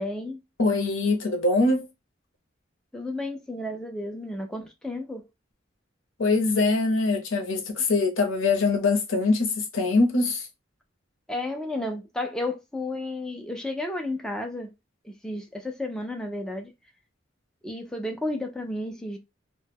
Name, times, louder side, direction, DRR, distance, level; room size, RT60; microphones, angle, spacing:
voice 1, 0.0-0.4 2.9-5.3 11.3-14.7 15.0-16.7 17.6-19.2, left 1 dB, 5° left, 0.4 m, -32 dB
voice 2, 0.6-1.9 6.2-10.5, left 3 dB, 80° left, 0.7 m, -23 dB
2.1 x 2.1 x 3.3 m
head